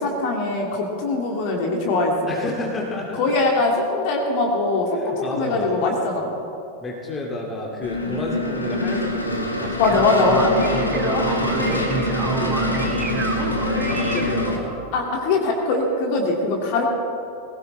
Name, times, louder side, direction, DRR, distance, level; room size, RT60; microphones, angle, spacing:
voice 1, 0.0-2.3 3.1-6.3 9.8-10.5 10.9-11.3 14.9-16.8, left 3 dB, 45° left, 0 dB, 2.4 m, -22 dB
voice 2, 2.3-3.2 4.9-6.0 6.8-10.0 11.3-14.7, left 2 dB, 20° left, -1 dB, 2.3 m, -31 dB
sound 1, 7.8-14.6, left 1 dB, 80° left, 1.7 m, -24 dB
sound 2, 9.6-14.8, right 3 dB, 20° right, 1.8 m, -30 dB
20.5 x 16.5 x 3.4 m, 2.6 s
figure-of-eight pair, 90°, 0 cm